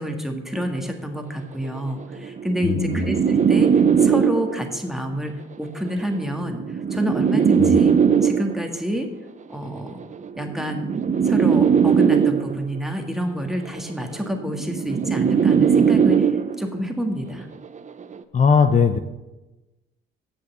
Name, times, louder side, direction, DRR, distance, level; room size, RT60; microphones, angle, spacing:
voice 1, 0.0-6.6 6.9-7.9 8.2-9.1 9.5-10.0 10.4-10.9 11.2-16.3 16.6-17.5, equal, ahead, 3 dB, 1.7 m, -28 dB
sound 1, 0.5-0.8 1.6-4.8 5.8-8.8 9.8-12.8 13.8-16.8 17.8-18.1, right 7 dB, 40° right, 0.7 m, -19 dB
voice 2, 2.6-3.0 7.6-7.8 18.3-19.0, left 5 dB, 40° left, 8 dB, 0.7 m, -18 dB
8.1 x 6.5 x 7.9 m, 1.0 s
cardioid pair, 90°, 20 cm